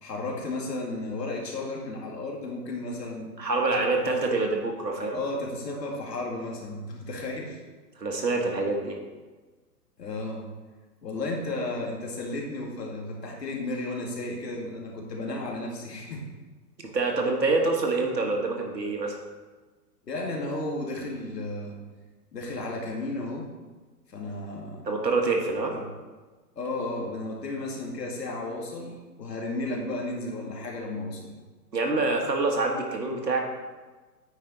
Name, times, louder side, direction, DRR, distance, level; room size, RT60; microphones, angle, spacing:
voice 1, 0.0-3.3 5.1-7.6 10.0-10.5 11.0-16.3 20.0-21.8 22.3-23.5 24.1-24.8 25.7-25.8 26.6-31.3, left 2 dB, 75° left, -1 dB, 2.2 m, -33 dB
voice 2, 3.4-5.2 8.0-9.0 16.9-19.2 24.9-25.7 31.7-33.4, right 3 dB, 85° right, 2 dB, 1.7 m, -26 dB
9.0 x 5.1 x 4.1 m, 1.3 s
figure-of-eight pair, 120°, 49 cm